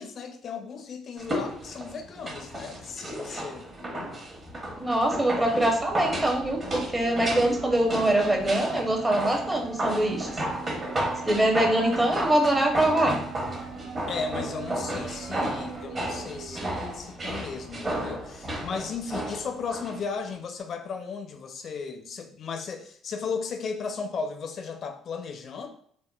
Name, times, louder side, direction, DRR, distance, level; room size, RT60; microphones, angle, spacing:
voice 1, 0.0-4.1 14.1-25.7, left 5 dB, 55° left, 6 dB, 0.4 m, -35 dB
sound 1, 1.2-20.0 20.3-20.4, right 1 dB, 35° right, 1.1 m, -33 dB
voice 2, 4.8-10.4 11.2-13.2, right 1 dB, 15° right, 2 dB, 0.7 m, -24 dB
sound 2, 6.9-16.9, right 5 dB, 50° right, 0.4 m, -41 dB
3.6 x 2.1 x 2.3 m, 0.63 s
hypercardioid pair, 65°, 0 cm